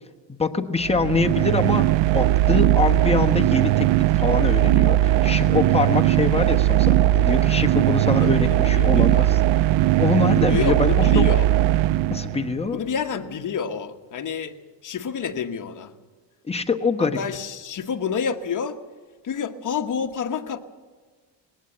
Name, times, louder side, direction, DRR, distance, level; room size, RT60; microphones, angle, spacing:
voice 1, 0.3-1.9 2.1-9.4 10.0-11.2 12.1-12.8 16.5-17.2, left 4 dB, 15° left, 4 dB, 1.2 m, -24 dB
sound 1, 0.8-12.6, right 14 dB, 70° right, 0.6 m, -19 dB
voice 2, 8.1-9.3 10.5-11.5 12.7-14.6 14.8-15.9 17.0-18.8 19.2-20.6, left 6 dB, 40° left, 6 dB, 1.3 m, -29 dB
20.0 x 17.5 x 7.9 m, 1.4 s
cardioid pair, 120°, 45 cm